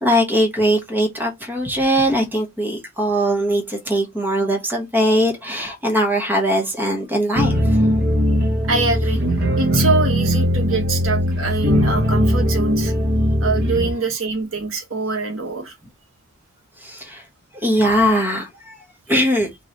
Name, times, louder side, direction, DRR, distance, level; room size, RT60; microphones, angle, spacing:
voice 1, 0.0-8.0 16.8-17.2 17.5-18.8 19.1-19.5, equal, 10° right, 1.2 m, -20 dB
sound 1, 7.4-13.9, equal, 50° right, 1.4 m, -19 dB
voice 2, 8.6-9.2 9.6-12.9 13.4-15.7, right 3 dB, 80° right, 1.3 m, -24 dB
3.9 x 3.1 x 3.9 m
head